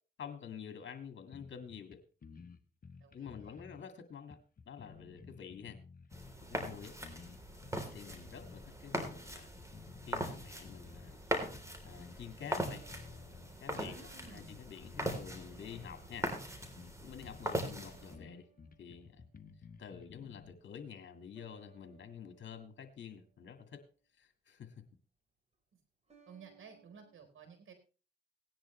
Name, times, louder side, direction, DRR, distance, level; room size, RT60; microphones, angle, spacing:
voice 1, 0.2-2.0 3.1-4.4 4.7-5.8 6.5-7.0 7.9-9.5 10.0-11.2 11.8-12.8 13.6-16.3 17.0-18.5 18.8-19.2 19.8-23.8 24.2-24.9, left 7 dB, 60° left, 8 dB, 2.0 m, -48 dB
sound 1, 1.3-2.0 2.2-3.9 4.3-6.4 6.7-8.6 9.0-9.2 9.6-11.2 11.5-12.2 12.5-13.5 13.9-16.0 16.3-16.4 16.6-16.9 17.2-20.5, left 5 dB, 45° left, 1.2 m, -54 dB
voice 2, 3.0-3.6 13.7-14.5 26.3-27.7, right 5 dB, 70° right, 5 dB, 4.1 m, -55 dB
sound 2, 6.1-18.1, right 1 dB, 15° right, 3.5 m, -41 dB
sound 3, 9.6-9.7 12.7-14.7 15.3-15.7 17.5-19.4 21.4-23.8 26.1-27.2, right 6 dB, 30° right, 4.6 m, -65 dB
17.5 x 10.0 x 3.2 m, 0.36 s
cardioid pair, 65°, 21 cm